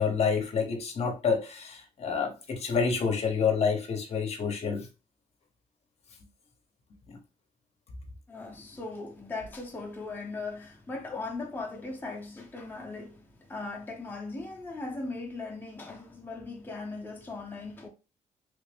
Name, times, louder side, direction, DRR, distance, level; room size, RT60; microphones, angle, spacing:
voice 1, 0.0-4.9 7.1-7.2, left 5 dB, 50° left, 0.8 m, -28 dB
voice 2, 8.3-17.9, left 3 dB, 15° left, 0.7 m, -39 dB
3.2 x 2.5 x 3.4 m
cardioid pair, 120°, 14 cm